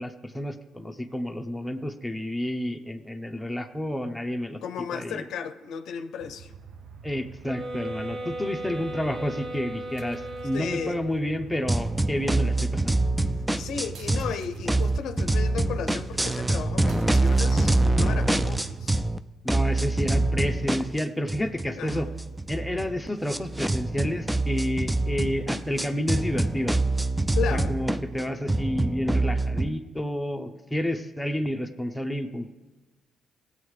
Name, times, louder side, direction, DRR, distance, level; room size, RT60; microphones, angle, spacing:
voice 1, 0.0-4.6 4.9-5.2 7.0-13.0 19.4-22.1 22.5-26.8 27.5-32.5, equal, 5° left, 0.8 m, -30 dB
voice 2, 4.6-6.5 10.5-11.0 13.6-19.0 21.8-22.1 27.3-27.7, left 7 dB, 75° left, 0.6 m, -34 dB
sound 1, 6.2-19.0, right 7 dB, 70° right, 0.6 m, -43 dB
sound 2, 7.4-11.3, right 1 dB, 45° right, 1.3 m, -36 dB
sound 3, 11.7-14.3 14.6-19.2 19.5-29.7, right 2 dB, 10° right, 0.4 m, -25 dB
17.0 x 8.0 x 3.3 m
supercardioid pair, 70°, 0 cm